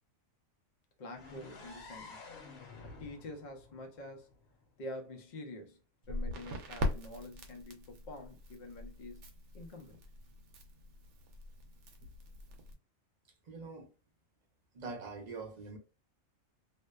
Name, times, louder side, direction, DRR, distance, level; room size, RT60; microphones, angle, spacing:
voice 1, 1.0-2.3 2.8-4.3 4.8-5.8 6.1-9.3 9.5-10.0, left 1 dB, 60° left, 0.4 m, -47 dB
sound 1, 1.1-5.0, left 3 dB, 80° left, 1.1 m, -52 dB
Crackle, 6.0-12.7, left 1 dB, 65° right, 0.8 m, -41 dB
voice 2, 13.5-13.9 14.7-15.8, right 4 dB, 50° right, 0.5 m, -43 dB
2.6 x 2.1 x 2.2 m
omnidirectional pair, 1.4 m